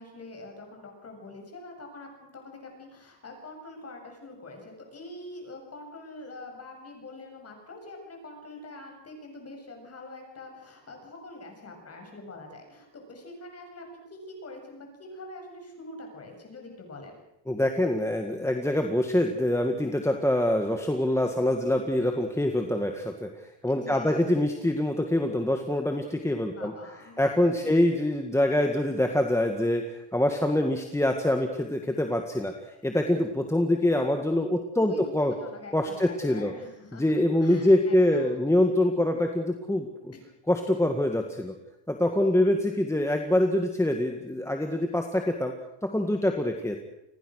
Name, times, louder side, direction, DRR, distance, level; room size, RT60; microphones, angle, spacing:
voice 1, 0.0-17.2 23.6-24.3 26.5-27.8 34.8-38.5 40.1-40.2, left 2 dB, 30° left, 3 dB, 7.6 m, -45 dB
voice 2, 17.5-26.7 27.2-35.3 35.7-36.5 36.9-40.1 40.5-41.5 41.9-45.5 45.8-46.8, left 1 dB, 5° left, 4 dB, 1.8 m, -25 dB
28.5 x 21.0 x 6.5 m, 0.90 s
cardioid pair, 155°, 47 cm